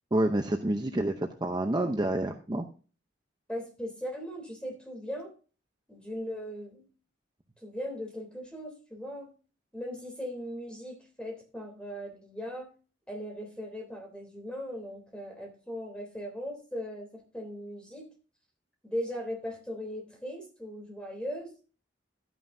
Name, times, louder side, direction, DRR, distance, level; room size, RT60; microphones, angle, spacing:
voice 1, 0.1-2.7, right 1 dB, 20° right, 5 dB, 0.7 m, -28 dB
voice 2, 3.5-5.3 5.9-6.8 7.6-9.3 9.7-12.7 13.1-18.1 18.8-21.7, equal, 5° left, 2 dB, 3.3 m, -38 dB
12.5 x 9.3 x 2.7 m, 0.37 s
head